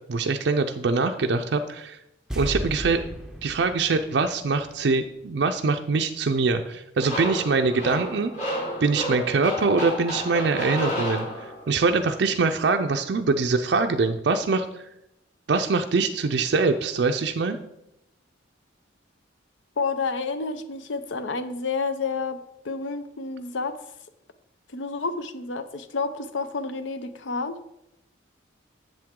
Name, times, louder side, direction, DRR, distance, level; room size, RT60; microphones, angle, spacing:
voice 1, 0.1-2.0 2.4-3.0 3.4-8.3 8.8-11.3 11.7-14.8 15.5-17.6, right 4 dB, 60° right, 5 dB, 0.4 m, -23 dB
sound 1, 2.3-5.5 5.8-5.9, equal, 5° right, 0.6 m, -35 dB
sound 2, 7.0-11.8, equal, 40° left, 2.4 m, -31 dB
voice 2, 19.8-22.4 22.6-23.8 24.7-27.6, left 4 dB, 70° left, 11 dB, 0.6 m, -29 dB
7.6 x 7.4 x 3.7 m, 0.85 s
head